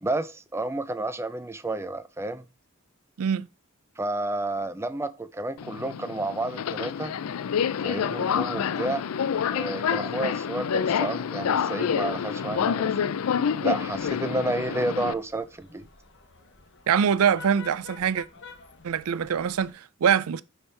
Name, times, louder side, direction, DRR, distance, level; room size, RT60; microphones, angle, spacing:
voice 1, 0.0-2.5 4.0-7.1 7.8-9.1 9.5-13.0 13.6-15.8, right 2 dB, 10° right, 0.5 m, -31 dB
Subway metro underground, 5.6-15.1, left 7 dB, 80° left, 0.4 m, -28 dB
sound 1, 13.7-19.7, left 5 dB, 55° left, 1.0 m, -50 dB
voice 2, 16.9-18.3 18.8-20.4, right 7 dB, 85° right, 0.4 m, -24 dB
9.6 x 3.5 x 4.4 m
head